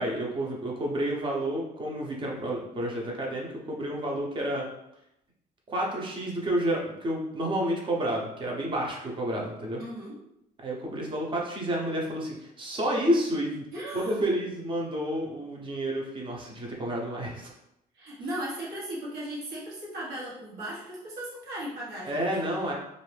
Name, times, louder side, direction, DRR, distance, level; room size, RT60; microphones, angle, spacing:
voice 1, 0.0-4.6 5.7-9.8 10.6-13.7 13.9-17.5 22.1-22.7, right 1 dB, 30° right, -2 dB, 0.8 m, -30 dB
voice 2, 9.8-10.2 13.7-14.3 17.9-22.4, right 1 dB, 70° right, -6 dB, 1.2 m, -37 dB
2.6 x 2.6 x 3.3 m, 0.82 s
cardioid pair, 110°, 17 cm